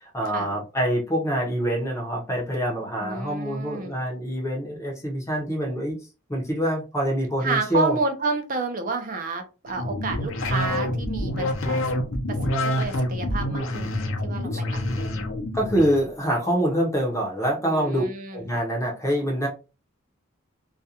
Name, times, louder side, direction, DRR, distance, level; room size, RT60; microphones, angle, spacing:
voice 1, 0.0-6.0 6.3-8.0 14.5-14.6 15.5-18.0 18.3-19.5, equal, 15° left, 0 dB, 0.6 m, -25 dB
voice 2, 3.0-4.0 7.4-11.8 12.4-15.2 17.7-18.4, right 3 dB, 40° right, 5 dB, 0.5 m, -30 dB
sound 1, 9.7-16.0, left 1 dB, 70° left, 0.5 m, -27 dB
2.4 x 2.2 x 2.7 m, 0.32 s
head